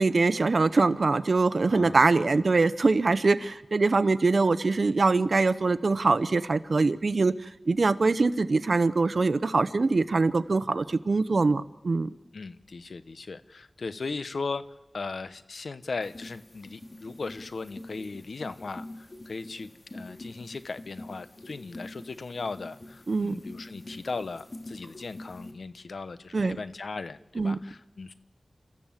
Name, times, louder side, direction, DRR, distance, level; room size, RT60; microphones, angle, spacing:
voice 1, 0.0-12.1 23.1-23.4 26.3-26.6 27.4-27.6, right 3 dB, 65° right, 14 dB, 0.9 m, -23 dB
voice 2, 1.7-2.6 12.3-14.6 14.9-28.1, left 4 dB, 80° left, 12 dB, 1.0 m, -38 dB
sound 1, 16.0-25.5, left 1 dB, 40° left, 3.1 m, -45 dB
29.5 x 14.5 x 7.5 m, 1.1 s
wide cardioid pair, 70°, 0 cm